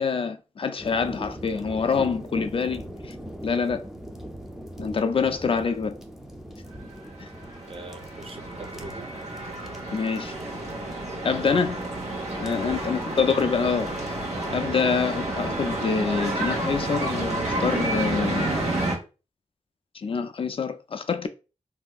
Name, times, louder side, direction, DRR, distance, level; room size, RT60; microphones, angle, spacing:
voice 1, 0.0-2.8 3.4-3.8 4.8-5.9 7.2-7.3 9.9-10.3 11.2-11.8 12.4-13.9 14.5-18.6 19.9-21.3, left 5 dB, 50° left, 0.3 m, -26 dB
sound 1, 0.8-14.5, equal, 5° right, 0.5 m, -42 dB
voice 2, 2.1-2.4 7.7-9.1 12.4-12.9, right 2 dB, 55° right, 0.6 m, -43 dB
sound 2, 6.9-19.0, right 2 dB, 75° right, 0.9 m, -30 dB
3.2 x 2.7 x 2.3 m
wide cardioid pair, 70°, 12 cm